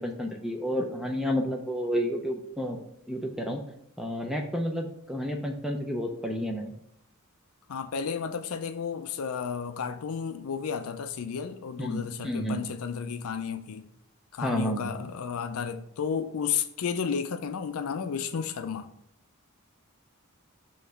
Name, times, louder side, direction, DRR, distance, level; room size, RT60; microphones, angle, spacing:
voice 1, 0.0-2.8 3.1-3.6 4.0-6.7 11.8-12.6 14.4-14.9, equal, ahead, 2 dB, 0.5 m, -30 dB
voice 2, 7.7-13.8 14.3-18.9, left 6 dB, 85° left, 8 dB, 0.5 m, -32 dB
5.7 x 3.1 x 5.6 m, 0.75 s
head